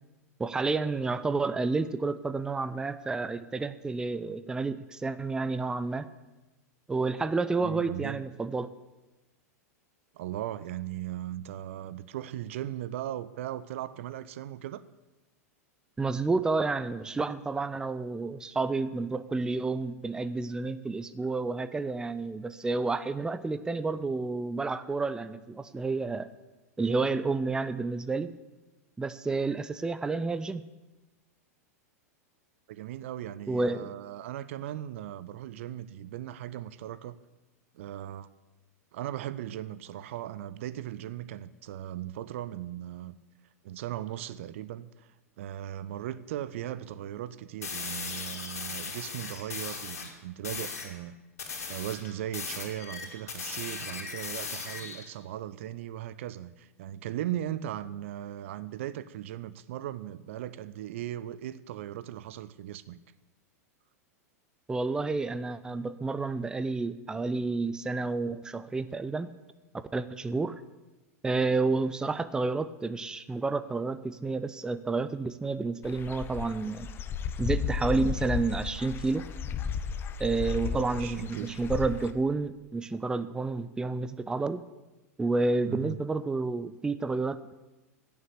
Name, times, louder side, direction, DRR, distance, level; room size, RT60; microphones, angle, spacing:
voice 1, 0.4-6.1 6.9-8.7 16.0-26.3 26.8-28.3 29.0-30.7 33.5-33.9 64.7-69.3 69.7-70.6 71.2-76.9 77.4-79.3 80.2-84.6 85.2-87.5, right 3 dB, 10° right, 0.5 m, -30 dB
voice 2, 7.6-8.3 10.1-14.8 32.7-37.2 37.7-38.3 38.9-43.1 43.6-45.1 45.4-51.2 51.7-63.0 80.7-81.6 85.7-86.0, right 12 dB, 55° right, 0.6 m, -38 dB
sound 1, 47.6-50.1 50.4-50.9 51.4-55.1, left 5 dB, 70° left, 2.7 m, -38 dB
Dog / Bird, 75.8-82.1, left 6 dB, 25° left, 0.9 m, -34 dB
15.5 x 7.0 x 8.2 m
figure-of-eight pair, 90°, 8 cm